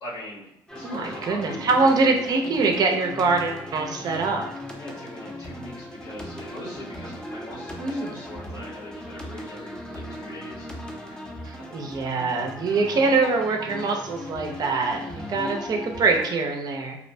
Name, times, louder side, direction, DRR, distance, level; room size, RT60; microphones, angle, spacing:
voice 1, 0.0-1.9 4.8-11.2, left 1 dB, 70° left, -7 dB, 1.1 m, -41 dB
sound 1, 0.7-16.3, left 1 dB, 10° left, 0.6 m, -38 dB
voice 2, 0.8-4.5 7.8-8.2 11.4-17.0, right 3 dB, 45° right, 3 dB, 0.5 m, -24 dB
2.6 x 2.1 x 2.6 m, 0.77 s
cardioid pair, 95°, 9 cm